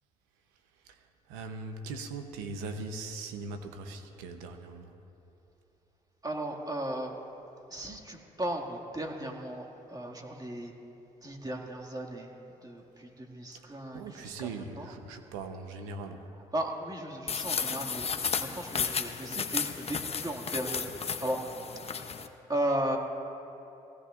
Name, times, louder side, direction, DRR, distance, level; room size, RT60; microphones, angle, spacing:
voice 1, 0.8-4.9 13.5-16.3, right 3 dB, 90° right, 7 dB, 0.9 m, -40 dB
voice 2, 6.2-7.1 7.7-10.7 11.2-12.3 12.6-14.5 14.8-14.9 16.5-18.1 18.4-21.4 22.5-23.0, right 1 dB, 25° right, 1 dB, 2.1 m, -35 dB
sound 1, 17.3-22.3, left 6 dB, 40° left, 0.8 m, -33 dB
20.0 x 16.5 x 2.5 m, 3.0 s
hypercardioid pair, 55°, 16 cm